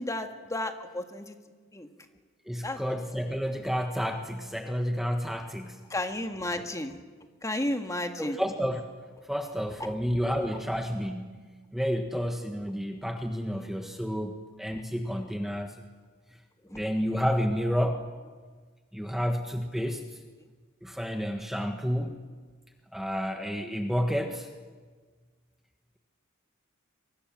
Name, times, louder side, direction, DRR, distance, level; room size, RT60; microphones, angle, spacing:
voice 1, 0.0-1.4 1.7-1.9 2.6-2.9 5.9-7.0 7.4-8.4 9.8-9.9 16.7-16.8, left 1 dB, 15° left, 6 dB, 1.7 m, -33 dB
voice 2, 2.5-5.8 8.2-8.8 9.3-11.4 11.7-15.8 16.7-18.1 18.9-20.0 20.8-22.2 22.9-24.5, equal, ahead, 4 dB, 1.4 m, -30 dB
29.5 x 23.5 x 7.4 m, 1.5 s
head